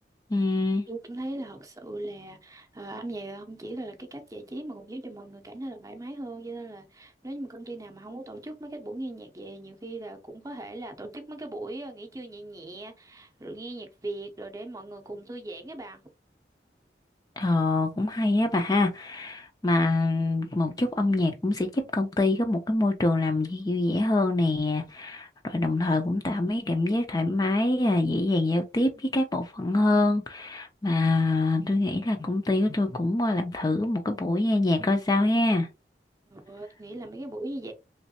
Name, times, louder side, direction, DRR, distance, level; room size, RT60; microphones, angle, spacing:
voice 1, 0.3-0.8 17.4-35.7, left 2 dB, 20° left, 0.4 m, -25 dB
voice 2, 0.9-16.0 36.3-37.7, right 2 dB, 20° right, 0.6 m, -39 dB
3.1 x 3.0 x 2.8 m
head